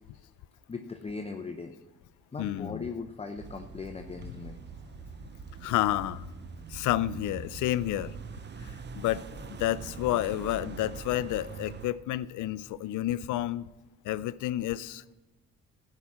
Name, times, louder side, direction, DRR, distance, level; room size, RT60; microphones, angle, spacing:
voice 1, 0.7-1.7 2.3-4.6 8.6-8.7, left 4 dB, 20° left, 0.6 m, -39 dB
voice 2, 2.4-2.9 4.2-4.3 5.6-6.3 6.7-8.2 8.6-13.7 14.0-15.1, left 14 dB, 75° left, 0.5 m, -30 dB
sound 1, 3.4-11.9, right 5 dB, 35° right, 0.7 m, -43 dB
13.0 x 4.9 x 7.2 m
cardioid pair, 90°, 30 cm